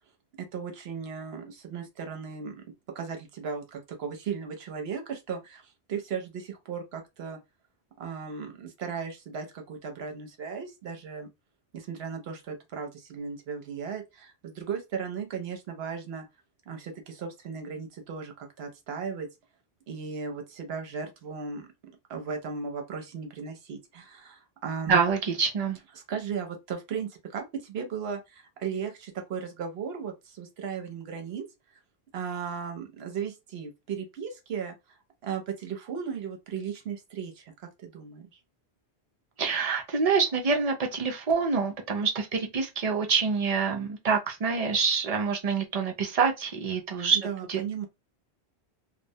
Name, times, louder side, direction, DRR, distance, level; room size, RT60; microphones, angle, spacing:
voice 1, 0.4-2.6 2.9-7.4 8.0-11.3 11.7-16.3 16.7-19.3 19.9-21.7 22.1-25.0 25.9-31.4 32.1-38.3 47.1-47.9, right 6 dB, 70° right, 0.9 m, -36 dB
voice 2, 24.9-25.8 39.4-47.2 47.5-47.6, right 5 dB, 50° right, 0.5 m, -26 dB
2.2 x 2.1 x 2.7 m
omnidirectional pair, 1.1 m